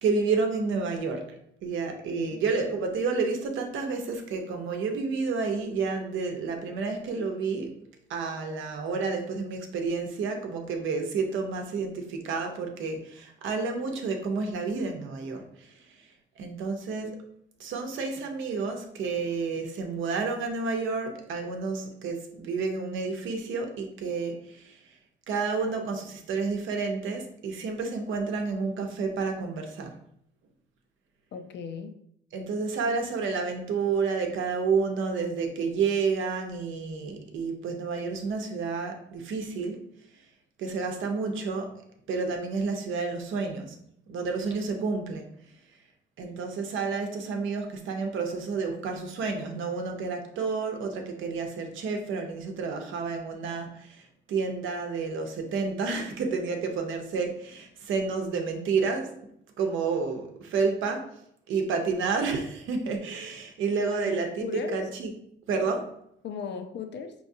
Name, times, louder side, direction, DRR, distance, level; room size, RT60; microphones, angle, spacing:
voice 1, 0.0-1.2 1.6-7.7 8.1-15.7 16.4-17.2 17.6-24.8 25.3-29.9 32.3-39.8 40.6-41.7 42.1-43.7 44.1-45.3 46.2-54.0 54.3-59.1 59.6-61.1 61.5-65.1 65.5-65.9, right 4 dB, 80° right, 4 dB, 0.8 m, -30 dB
voice 2, 31.3-31.9 63.9-64.9 66.2-67.1, left 7 dB, 60° left, 7 dB, 0.6 m, -37 dB
4.9 x 3.0 x 2.7 m, 0.72 s
cardioid pair, 90°, 20 cm